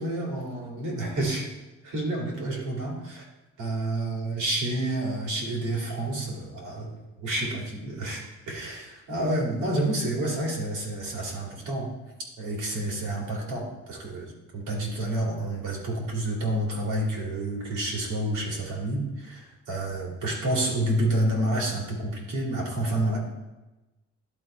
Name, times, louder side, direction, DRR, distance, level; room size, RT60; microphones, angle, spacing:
voice 1, 0.0-1.5 1.8-3.2 3.6-6.9 7.2-11.9 12.4-23.2, right 1 dB, 80° right, -1 dB, 2.6 m, -29 dB
11.0 x 4.0 x 4.4 m, 1.0 s
cardioid pair, 90°, 30 cm